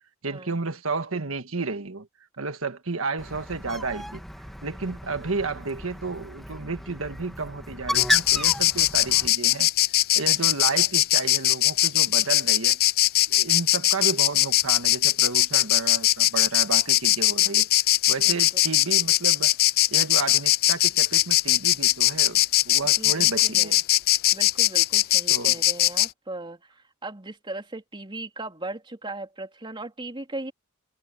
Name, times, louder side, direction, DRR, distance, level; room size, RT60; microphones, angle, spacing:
voice 1, 0.2-2.1 2.4-4.2 4.6-9.7 10.1-12.8 13.3-17.7 18.1-19.5 19.9-22.4 22.6-23.8 25.3-25.6, right 3 dB, 70° right, 1.6 m, -32 dB
Bird, 3.2-9.3, equal, ahead, 2.0 m, -34 dB
Insect, 7.9-26.1, left 16 dB, 45° left, 0.3 m, -20 dB
voice 2, 23.0-23.8 24.3-30.5, right 2 dB, 25° right, 3.5 m, -38 dB
head